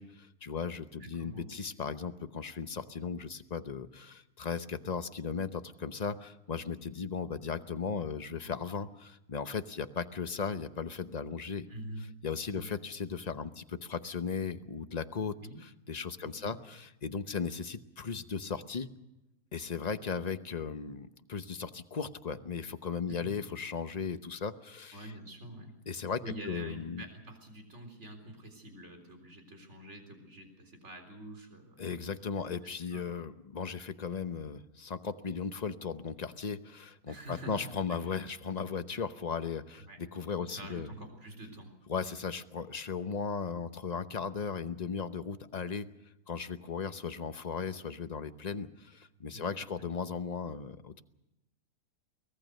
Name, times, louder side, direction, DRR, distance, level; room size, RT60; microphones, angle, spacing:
voice 1, 0.0-11.7 12.2-15.4 15.9-18.9 19.5-25.1 25.9-27.0 31.8-40.9 41.9-45.9 46.3-51.0, left 5 dB, 35° left, 10 dB, 0.8 m, -37 dB
voice 2, 1.0-1.5 11.7-12.0 12.5-12.8 15.4-15.6 16.2-16.5 23.0-23.3 24.9-25.7 26.2-32.0 32.4-32.5 32.9-33.1 37.1-37.7 38.1-38.2 39.8-40.0 40.5-41.7 49.3-49.9, right 1 dB, 45° right, 5 dB, 4.3 m, -46 dB
24.0 x 19.0 x 6.5 m, 0.93 s
omnidirectional pair, 1.7 m